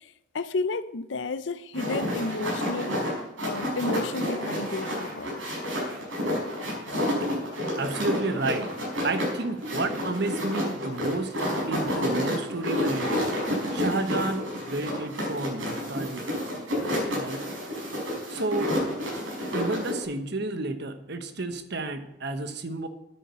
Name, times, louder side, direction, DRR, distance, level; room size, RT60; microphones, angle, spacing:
voice 1, 0.3-3.0 3.4-5.4, left 3 dB, 65° left, 0.6 m, -32 dB
sound 1, 1.7-20.0, equal, 75° right, 5.4 m, -30 dB
voice 2, 7.8-8.7 9.0-11.3 11.7-13.2 13.7-16.3 17.1-17.4 18.3-18.7 19.5-22.9, right 2 dB, 55° right, 1.1 m, -31 dB
10.0 x 9.0 x 6.8 m
head